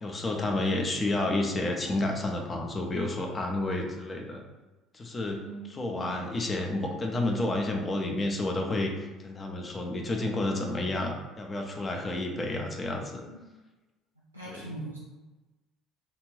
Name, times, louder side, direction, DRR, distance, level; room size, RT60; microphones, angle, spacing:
voice 1, 0.0-4.4 4.9-13.2 14.5-14.7, left 2 dB, 25° left, 2 dB, 0.5 m, -30 dB
voice 2, 5.4-6.3 13.3-13.4 14.3-15.0, right 2 dB, 90° right, -6 dB, 0.3 m, -41 dB
2.5 x 2.4 x 3.1 m, 1.1 s
figure-of-eight pair, 55°, 0 cm